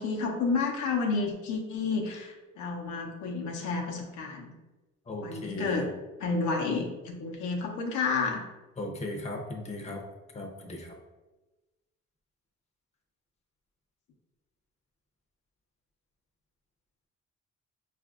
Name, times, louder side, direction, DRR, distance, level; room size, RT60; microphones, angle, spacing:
voice 1, 0.0-4.5 5.2-5.9 6.2-8.4, left 4 dB, 80° left, 1 dB, 0.7 m, -30 dB
voice 2, 5.1-5.8 8.8-10.0 10.3-10.9, left 1 dB, 20° left, 1 dB, 0.6 m, -37 dB
4.9 x 2.5 x 2.4 m, 1.1 s
cardioid pair, 90°, 30 cm